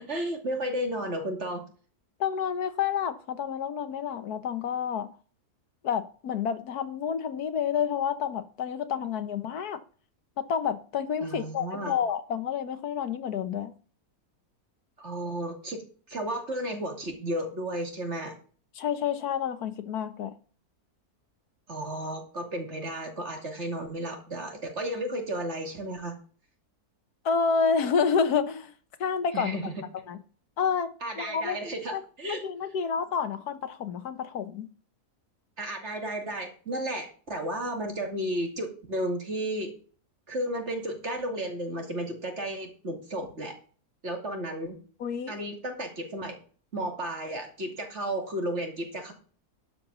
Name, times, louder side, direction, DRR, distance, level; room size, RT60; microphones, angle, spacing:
voice 1, 0.0-1.6 11.2-11.9 15.0-15.8 16.1-18.3 21.7-26.1 29.3-29.7 31.0-32.4 35.6-39.7 40.3-43.5 44.0-44.8 45.3-46.4 46.7-49.1, right 1 dB, 45° right, 2.9 m, -33 dB
voice 2, 2.2-5.1 5.8-9.8 10.4-13.7 18.7-20.3 27.2-28.7 29.0-29.6 30.1-30.2 30.6-30.9 31.2-31.6 31.9-32.0 32.3-34.7 45.0-45.3, left 6 dB, 75° left, 1.5 m, -29 dB
12.0 x 5.3 x 6.8 m
omnidirectional pair, 1.7 m